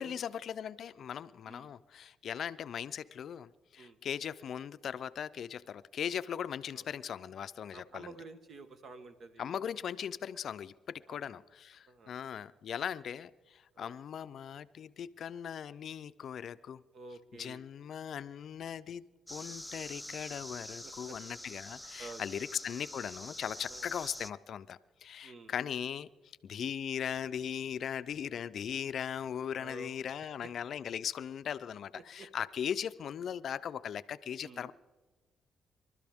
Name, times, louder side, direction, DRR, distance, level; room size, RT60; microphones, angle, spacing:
voice 1, 0.0-8.1 9.4-16.8 17.4-19.0 19.3-26.1 26.4-34.7, left 8 dB, 60° left, 15 dB, 0.4 m, -39 dB
voice 2, 7.7-9.5 11.1-11.5 11.9-12.1 13.7-14.0 16.9-17.7 20.8-21.2 22.0-22.5 23.7-23.9 25.2-25.5 29.5-30.0 30.4-30.5 31.9-32.3 34.4-34.7, right 3 dB, 55° right, 9 dB, 1.3 m, -50 dB
sound 1, 19.3-24.3, left 1 dB, 5° left, 0.5 m, -46 dB
25.5 x 12.5 x 3.6 m, 1.2 s
cardioid pair, 90°, 0 cm